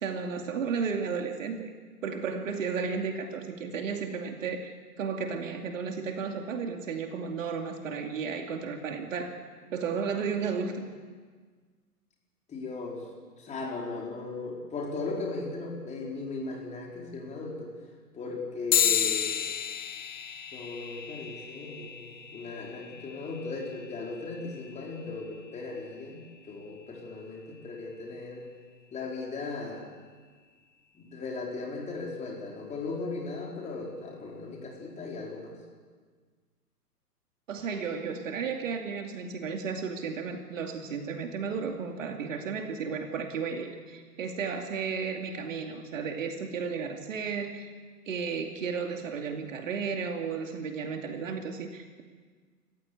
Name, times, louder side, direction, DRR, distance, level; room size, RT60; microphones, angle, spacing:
voice 1, 0.0-1.7 2.0-4.7 5.0-9.4 9.7-10.9 37.5-47.7 48.1-52.0, right 5 dB, 50° right, 4 dB, 2.6 m, -33 dB
voice 2, 12.5-13.0 13.4-17.7 18.1-19.4 20.5-28.5 28.9-29.8 30.9-35.6, left 3 dB, 15° left, -1 dB, 4.5 m, -37 dB
sound 1, 18.7-28.5, left 9 dB, 50° left, 2.2 m, -34 dB
29.0 x 15.5 x 8.3 m, 1.5 s
figure-of-eight pair, 120°, 48 cm